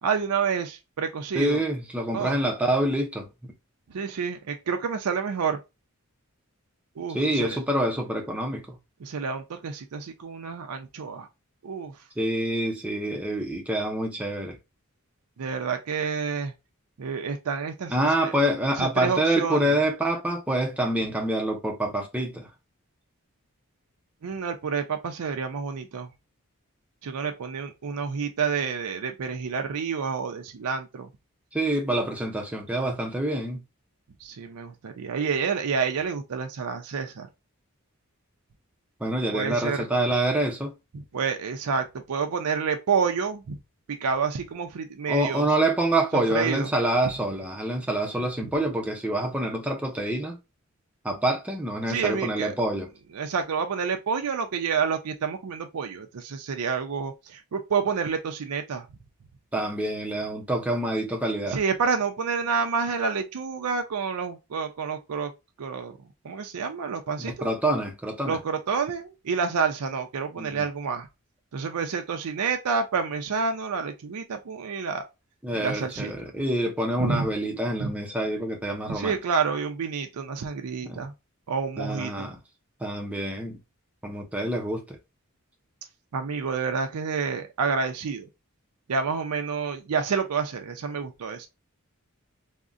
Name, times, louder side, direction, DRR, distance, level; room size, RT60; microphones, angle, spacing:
voice 1, 0.0-1.6 2.1-2.4 3.9-5.6 7.0-7.6 9.0-11.3 11.6-12.0 15.4-16.5 17.0-18.3 18.8-19.8 24.2-26.1 27.0-31.1 34.2-37.3 39.3-39.9 40.9-43.6 43.9-45.5 46.1-46.7 51.9-52.5 53.1-58.9 61.5-65.3 65.6-67.5 68.2-71.1 71.5-75.0 75.5-76.1 77.0-77.2 77.8-77.9 78.9-81.1 81.5-82.3 86.1-88.3 88.9-91.5, right 5 dB, 90° right, 0.5 m, -29 dB
voice 2, 1.3-3.5 7.1-8.8 12.2-14.6 17.9-22.5 31.5-33.6 39.0-40.7 45.1-50.4 51.0-52.9 59.5-61.6 67.2-68.4 70.4-70.7 75.4-79.2 80.8-81.0 81.8-82.4 82.8-83.6 84.0-85.0, right 1 dB, 5° right, 0.5 m, -26 dB
3.6 x 2.1 x 2.4 m
head